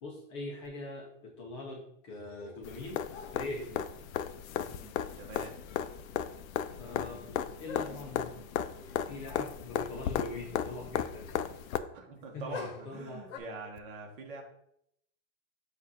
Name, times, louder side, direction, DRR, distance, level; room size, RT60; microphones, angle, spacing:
voice 1, 0.0-3.0 3.3-3.9 6.8-8.5 8.8-11.4 12.3-13.3, left 2 dB, 25° left, 0 dB, 0.6 m, -42 dB
sound 1, 2.1-2.8 3.1-3.9 5.3-5.4 5.7-6.2 6.5-6.6 7.7-8.2 8.8-9.1 9.3-9.4 12.5-13.4, left 7 dB, 65° left, 1.0 m, -47 dB
sound 2, 2.6-11.8 13.8-13.9, left 9 dB, 85° left, 0.6 m, -36 dB
voice 2, 4.5-5.6 11.9-14.4, right 3 dB, 40° right, 1 dB, 1.3 m, -44 dB
7.2 x 2.6 x 5.4 m, 0.74 s
supercardioid pair, 175°, 40 cm